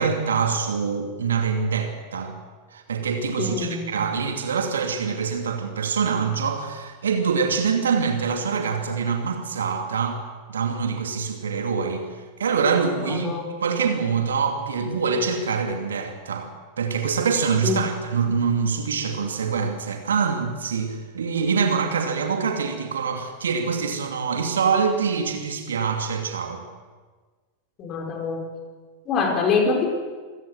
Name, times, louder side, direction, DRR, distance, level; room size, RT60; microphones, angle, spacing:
voice 1, 0.0-2.3 2.7-10.2 10.5-12.1 12.4-13.3 13.6-16.5 16.8-26.6, right 5 dB, 65° right, 4 dB, 2.6 m, -25 dB
voice 2, 3.4-3.9 13.0-13.5 17.6-17.9 27.8-28.5 29.0-29.9, left 4 dB, 35° left, 2 dB, 5.2 m, -24 dB
26.5 x 16.5 x 8.0 m, 1.4 s
figure-of-eight pair, 90°, 0 cm